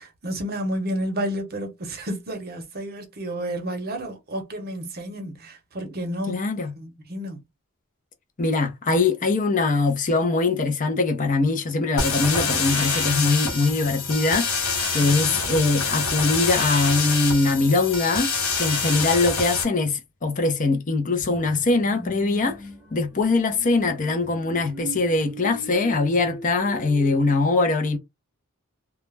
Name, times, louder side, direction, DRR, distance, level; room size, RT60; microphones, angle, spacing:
voice 1, 0.0-6.4 6.8-7.4 14.9-15.5, equal, 45° right, 0.7 m, -31 dB
voice 2, 6.3-6.7 8.4-18.3 18.6-22.6 22.9-28.0, left 3 dB, 35° left, 0.5 m, -22 dB
sound 1, 12.0-19.6, left 4 dB, 80° left, 1.2 m, -26 dB
sound 2, 21.2-27.2, equal, 10° right, 0.7 m, -39 dB
2.3 x 2.1 x 3.2 m
head